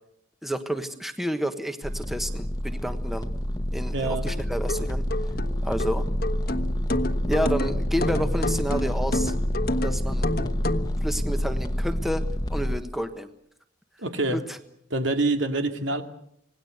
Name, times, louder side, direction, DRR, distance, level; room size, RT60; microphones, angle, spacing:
voice 1, 0.4-3.3 3.7-5.0 5.6-6.0 7.3-9.3 9.8-10.3 11.0-12.2 12.5-13.3 14.3-14.6, equal, ahead, 8 dB, 1.2 m, -30 dB
sound 1, 1.8-12.8, equal, 20° left, 1.2 m, -28 dB
voice 2, 3.9-4.3 14.0-14.4 14.9-16.0, right 2 dB, 70° right, 6 dB, 2.4 m, -26 dB
sound 2, 4.3-10.9, left 2 dB, 50° left, 1.3 m, -30 dB
26.5 x 19.0 x 8.0 m, 0.72 s
head